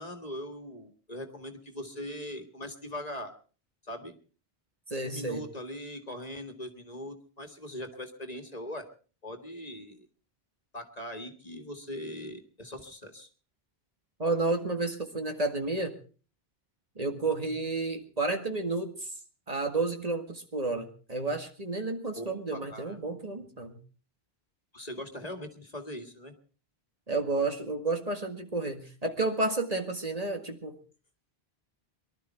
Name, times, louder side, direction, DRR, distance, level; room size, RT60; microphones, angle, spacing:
voice 1, 0.0-3.3 3.8-4.1 5.0-8.9 9.2-10.1 10.7-13.3 22.2-23.0 24.7-26.3, left 1 dB, 40° left, 7 dB, 2.0 m, -41 dB
voice 2, 4.9-5.4 14.2-15.9 17.0-19.1 19.5-23.8 27.1-30.8, right 3 dB, 40° right, 5 dB, 2.0 m, -31 dB
23.5 x 12.5 x 4.5 m, 0.38 s
omnidirectional pair, 1.0 m